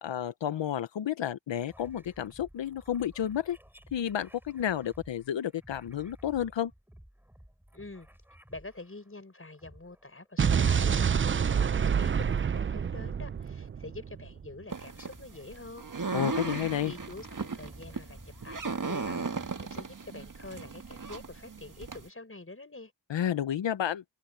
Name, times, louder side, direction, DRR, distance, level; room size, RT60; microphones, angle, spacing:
voice 1, 0.0-3.6 3.9-6.7 16.1-16.9 23.1-24.0, left 10 dB, 85° left, 0.8 m, -31 dB
sound 1, 1.7-9.1 9.5-10.3 12.0-12.4 13.4-13.6 14.7-15.5 16.0-20.3, equal, 5° right, 7.9 m, -55 dB
voice 2, 7.7-8.1 8.5-16.1 16.5-22.9, left 2 dB, 30° left, 6.7 m, -46 dB
Explosion, 10.4-14.5, right 7 dB, 30° right, 0.4 m, -27 dB
sound 2, 14.7-22.1, right 4 dB, 45° right, 1.8 m, -37 dB
cardioid pair, 65°, 43 cm